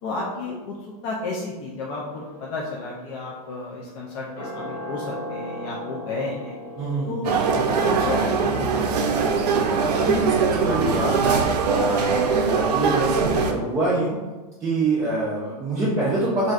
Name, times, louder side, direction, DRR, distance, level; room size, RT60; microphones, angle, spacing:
voice 1, 0.0-6.6 7.1-8.9 9.2-9.5, left 3 dB, 45° left, -3 dB, 0.4 m, -32 dB
sound 1, 1.9-12.3 12.6-12.7, left 1 dB, 75° left, 1.4 m, -40 dB
voice 2, 6.8-7.2 10.0-11.4 11.7-14.2 14.6-16.5, right 2 dB, 15° right, -8 dB, 0.5 m, -25 dB
sound 2, 7.2-13.5, right 5 dB, 90° right, 0.5 m, -22 dB
3.1 x 2.6 x 2.3 m, 1.2 s
supercardioid pair, 140°, 20 cm